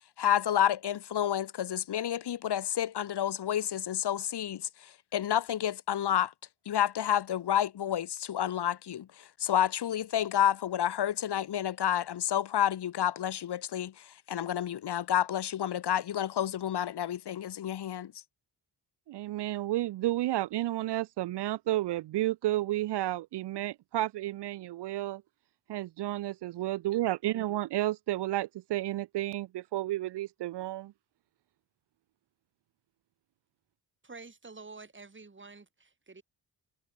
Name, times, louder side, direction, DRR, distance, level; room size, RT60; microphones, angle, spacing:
voice 1, 0.2-6.3 6.7-18.1, left 10 dB, 70° left, 2.8 m, -30 dB
voice 2, 19.1-25.2 25.7-30.9, right 15 dB, 75° right, 0.7 m, -31 dB
voice 3, 34.0-36.2, right 3 dB, 30° right, 6.7 m, -49 dB
cardioid pair, 85°, 41 cm